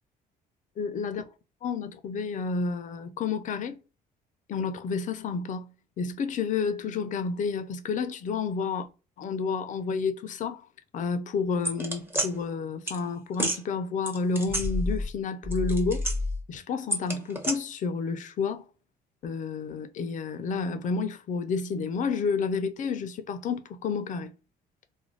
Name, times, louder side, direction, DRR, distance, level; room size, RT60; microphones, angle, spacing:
voice 1, 0.8-1.2 1.6-3.8 4.5-5.7 6.0-8.9 9.2-10.6 10.9-16.1 16.5-18.7 19.2-24.3, left 5 dB, 50° left, 0.5 m, -30 dB
sound 1, 11.6-12.3 12.9-13.0 13.3-13.6 14.1-15.2 15.4-16.4 16.9-17.5, equal, 15° right, 0.8 m, -29 dB
2.5 x 2.2 x 3.1 m
cardioid pair, 110°, 17 cm